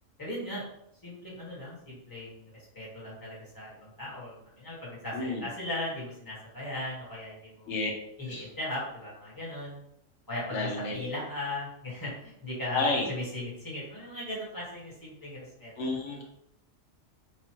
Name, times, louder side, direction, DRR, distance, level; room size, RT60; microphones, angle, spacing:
voice 1, 0.2-0.6 1.0-7.7 8.2-9.8 10.3-15.7, left 1 dB, 15° left, -7 dB, 1.5 m, -38 dB
voice 2, 5.1-5.4 7.7-7.9 8.3-8.5 10.5-11.1 12.7-13.1 15.8-16.2, left 3 dB, 65° left, 0 dB, 1.1 m, -30 dB
4.7 x 2.5 x 3.0 m, 0.73 s
omnidirectional pair, 1.4 m